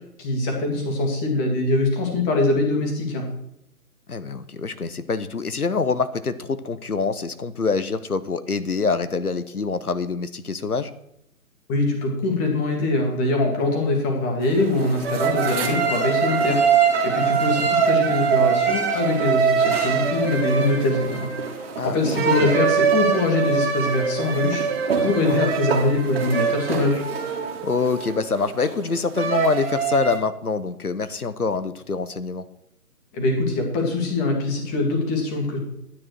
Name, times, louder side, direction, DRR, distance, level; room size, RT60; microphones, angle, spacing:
voice 1, 0.2-3.3 11.7-16.6 17.0-24.6 25.0-27.0 33.1-35.6, left 2 dB, 15° left, 2 dB, 1.9 m, -23 dB
voice 2, 4.1-10.9 21.8-22.5 25.3-25.5 27.6-32.4, left 4 dB, 75° left, 13 dB, 1.1 m, -25 dB
sound 1, 14.4-30.2, right 6 dB, 40° right, 2.3 m, -23 dB
11.5 x 9.7 x 4.7 m, 0.76 s
figure-of-eight pair, 140°, 45 cm